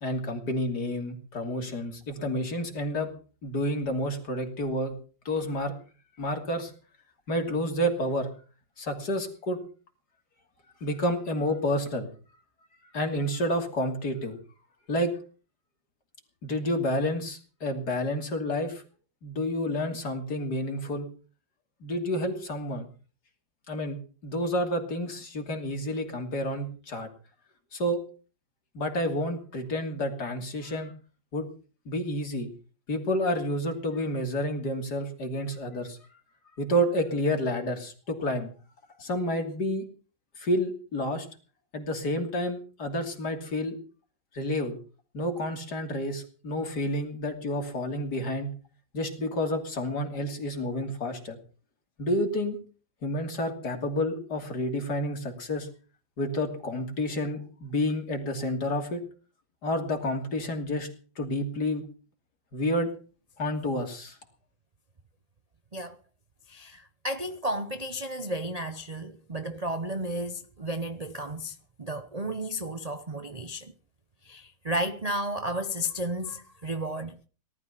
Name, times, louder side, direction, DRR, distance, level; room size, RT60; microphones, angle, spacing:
voice 1, 0.0-3.1 3.4-5.0 5.2-5.8 6.2-6.7 7.3-8.3 8.8-9.6 10.8-12.1 12.9-14.4 14.9-15.2 16.4-18.8 19.2-21.1 21.8-22.9 23.7-27.1 27.7-28.0 28.7-30.9 31.3-31.5 31.8-32.5 32.9-36.2 36.6-38.5 39.0-39.8 40.4-41.3 41.7-43.8 44.3-44.8 45.1-48.5 48.9-51.4 52.0-52.6 53.0-55.7 56.2-59.0 59.6-61.9 62.5-62.9 63.4-64.2, left 1 dB, 50° left, 3.4 m, -29 dB
voice 2, 66.5-73.7 74.2-77.2, right 1 dB, 55° right, 0.4 m, -33 dB
18.5 x 12.5 x 5.8 m
omnidirectional pair, 2.3 m